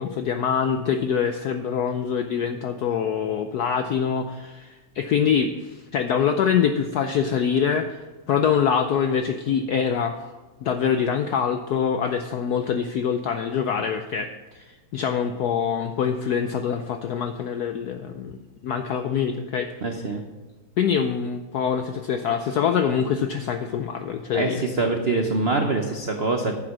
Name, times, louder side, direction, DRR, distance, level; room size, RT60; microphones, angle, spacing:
voice 1, 0.0-8.0 8.3-10.2 10.6-14.3 14.5-19.7 20.8-24.6, left 7 dB, 80° left, 7 dB, 0.8 m, -24 dB
voice 2, 19.8-20.2 24.3-26.5, right 3 dB, 85° right, 4 dB, 0.5 m, -24 dB
9.9 x 7.4 x 6.0 m, 1.3 s
omnidirectional pair, 2.3 m